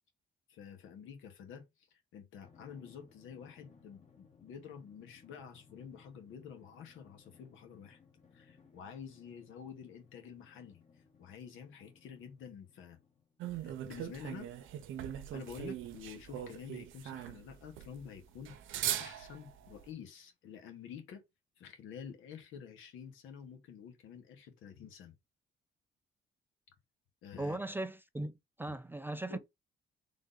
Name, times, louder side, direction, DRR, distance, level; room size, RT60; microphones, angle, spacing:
voice 1, 0.5-8.0 8.3-13.0 13.6-14.5 15.3-18.5 19.0-21.2 21.6-25.1 27.2-27.6 28.7-28.8 29.3-29.4, left 7 dB, 80° left, 1.1 m, -49 dB
Drum, 2.4-13.5, left 6 dB, 35° left, 1.2 m, -64 dB
sound 1, 13.4-19.8, right 11 dB, 80° right, 0.6 m, -40 dB
voice 2, 27.4-29.4, right 2 dB, 10° right, 0.3 m, -38 dB
3.4 x 2.6 x 3.8 m
cardioid pair, 90°, 20 cm